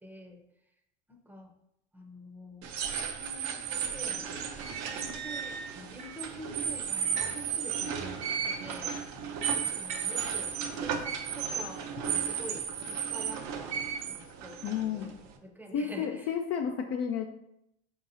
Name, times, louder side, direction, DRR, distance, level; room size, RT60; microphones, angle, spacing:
voice 1, 0.0-0.4 1.1-1.5 1.9-4.3 4.9-8.9 9.6-13.8 14.1-15.1 15.4-16.3, right 1 dB, 5° right, 1 dB, 0.7 m, -47 dB
sound 1, 2.6-15.3, right 7 dB, 55° right, 0.6 m, -34 dB
sound 2, 6.0-6.3 7.0-7.5 7.7-10.4, right 4 dB, 90° right, 0.9 m, -44 dB
voice 2, 14.6-15.1 15.7-17.3, left 7 dB, 45° left, 4 dB, 0.4 m, -31 dB
4.5 x 2.8 x 2.7 m, 0.81 s
supercardioid pair, 85°, 34 cm